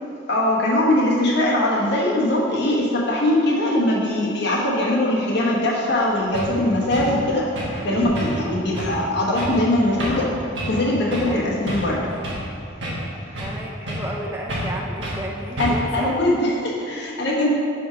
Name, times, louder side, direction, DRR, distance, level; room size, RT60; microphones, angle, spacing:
voice 1, 0.3-10.3 10.6-12.0 15.6-17.5, left 1 dB, 55° left, -4 dB, 1.2 m, -21 dB
sound 1, 5.9-6.0 6.3-6.5 6.9-7.1 7.5-7.8 8.1-8.5 8.7-9.0 9.3-9.6 10.0-10.3 10.5-10.8 11.1-11.3 11.7-12.5 12.8-13.6 13.9-14.2 14.5-14.7 15.0-15.2 15.6-15.9, equal, 60° right, 1.5 m, -29 dB
voice 2, 11.3-11.6 13.4-16.1, equal, 10° right, -1 dB, 0.4 m, -33 dB
5.0 x 4.9 x 5.0 m, 2.6 s
head